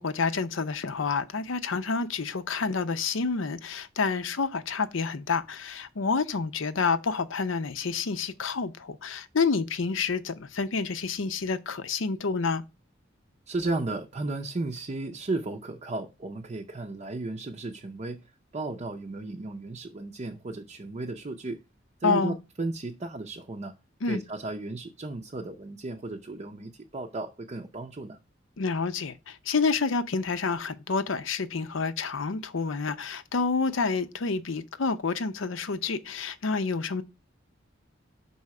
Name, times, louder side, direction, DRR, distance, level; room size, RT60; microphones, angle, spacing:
voice 1, 0.0-12.6 22.0-22.4 24.0-24.2 28.6-37.0, left 4 dB, 85° left, 0.6 m, -28 dB
voice 2, 13.5-18.2 18.5-21.6 22.0-23.7 24.1-28.2, right 2 dB, 35° right, 0.6 m, -34 dB
5.5 x 4.2 x 4.8 m
head